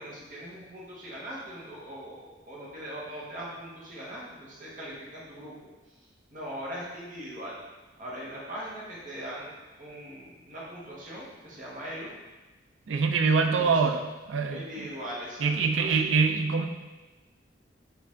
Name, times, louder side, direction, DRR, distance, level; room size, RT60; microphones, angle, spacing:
voice 1, 0.0-5.7 6.3-7.6 8.0-9.5 9.8-12.1 13.4-13.8 14.5-16.0, equal, 45° right, -6 dB, 1.2 m, -40 dB
voice 2, 12.9-14.6 15.4-16.7, right 5 dB, 90° right, 6 dB, 0.4 m, -24 dB
4.7 x 2.6 x 3.6 m, 1.2 s
head